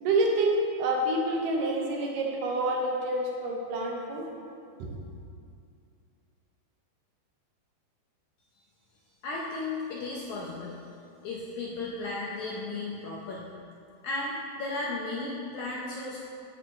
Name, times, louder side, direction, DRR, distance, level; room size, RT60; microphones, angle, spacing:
voice 1, 0.0-4.2 4.8-5.0, right 2 dB, 75° right, -1 dB, 2.5 m, -27 dB
voice 2, 9.2-10.8 11.2-13.4 14.0-16.2, left 2 dB, 75° left, -3 dB, 1.8 m, -34 dB
7.9 x 4.9 x 7.4 m, 2.4 s
omnidirectional pair, 4.2 m